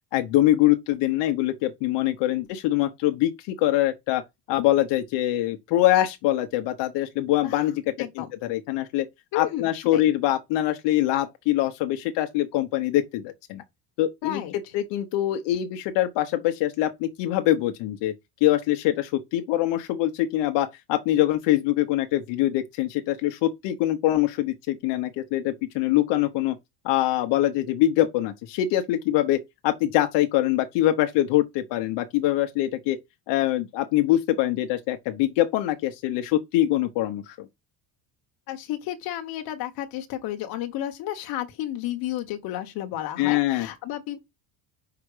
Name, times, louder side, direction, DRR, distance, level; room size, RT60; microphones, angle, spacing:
voice 1, 0.1-4.2 4.5-7.8 8.2-9.1 9.3-13.6 14.0-14.4 14.7-18.1 18.4-26.6 26.8-33.0 33.3-37.5 43.2-43.7, left 14 dB, 70° left, 1.1 m, -24 dB
voice 2, 8.0-8.3 9.3-10.0 14.2-14.5 38.5-44.2, left 13 dB, 55° left, 1.3 m, -32 dB
5.9 x 5.0 x 5.0 m
cardioid pair, 170°, 44 cm